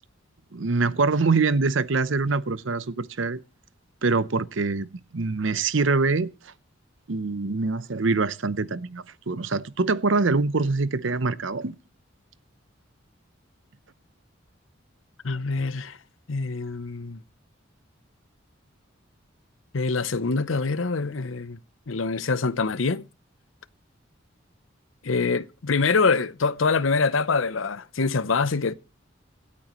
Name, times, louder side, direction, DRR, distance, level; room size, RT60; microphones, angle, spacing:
voice 1, 0.5-3.4 4.0-6.5 7.1-11.7, right 3 dB, 75° right, 0.8 m, -24 dB
voice 2, 15.2-16.0 16.3-17.2 19.7-21.6 21.9-23.1 25.0-28.7, left 4 dB, 80° left, 0.8 m, -25 dB
25.5 x 8.6 x 3.1 m
head